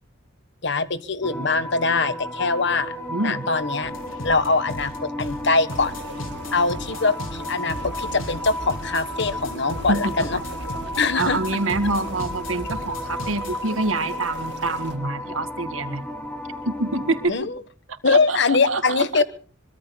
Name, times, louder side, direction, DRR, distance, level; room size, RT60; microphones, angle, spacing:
voice 1, 0.6-2.9 3.2-3.9 4.2-5.9 6.5-10.4 11.0-11.5 17.3-17.6 18.0-19.2, left 4 dB, 60° left, 14 dB, 1.3 m, -22 dB
sound 1, 1.2-17.3, left 1 dB, 10° left, 3.0 m, -33 dB
voice 2, 3.1-3.5 9.9-10.4 11.2-16.0 16.7-17.3 17.9-19.2, right 2 dB, 85° right, 10 dB, 2.1 m, -26 dB
sound 2, 3.8-14.9, left 1 dB, 80° left, 4.1 m, -36 dB
sound 3, 5.7-15.0, right 4 dB, 55° right, 2.3 m, -44 dB
25.0 x 24.0 x 2.2 m, 0.40 s
head